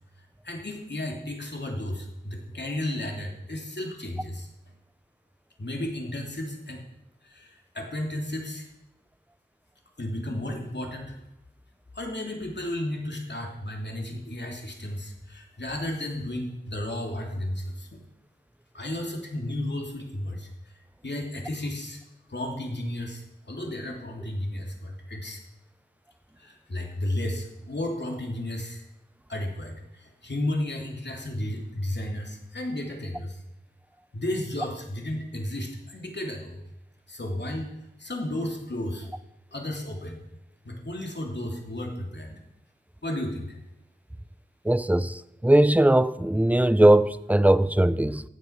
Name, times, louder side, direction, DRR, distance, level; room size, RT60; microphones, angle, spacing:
voice 1, 0.4-4.5 5.6-6.8 7.2-8.7 10.0-11.1 11.9-18.0 18.7-20.5 21.0-22.0 22.3-25.4 26.4-28.8 29.3-33.4 34.1-36.6 37.1-37.7 38.0-39.1 39.5-40.2 40.6-42.4 43.0-43.6, left 1 dB, 60° left, 3.0 m, -33 dB
voice 2, 44.6-48.2, right 1 dB, 5° right, 0.6 m, -20 dB
15.0 x 9.7 x 5.9 m
wide cardioid pair, 50°, 20 cm